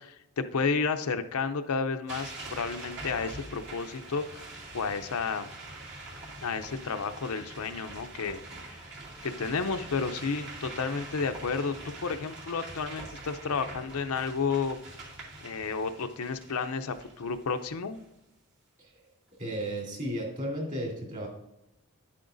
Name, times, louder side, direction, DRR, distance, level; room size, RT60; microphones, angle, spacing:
voice 1, 0.0-4.4 4.7-5.5 6.4-8.4 8.7-8.8 9.2-14.8 15.4-18.0, left 5 dB, 75° left, 8 dB, 0.6 m, -31 dB
sound 1, 2.1-18.0, right 2 dB, 55° right, 2.5 m, -44 dB
voice 2, 19.4-21.3, right 1 dB, 35° right, -2 dB, 3.3 m, -34 dB
10.0 x 8.7 x 2.6 m, 0.88 s
head